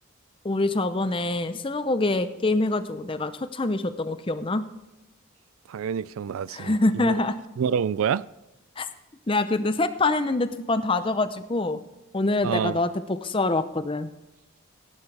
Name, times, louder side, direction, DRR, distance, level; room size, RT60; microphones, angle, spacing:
voice 1, 0.4-4.6 6.5-7.4 8.8-8.9 9.3-11.8 12.1-14.1, left 2 dB, 25° left, 0.6 m, -25 dB
voice 2, 5.7-7.2 7.6-8.2 12.4-12.8, right 7 dB, 75° right, 0.3 m, -27 dB
17.0 x 11.0 x 3.4 m
head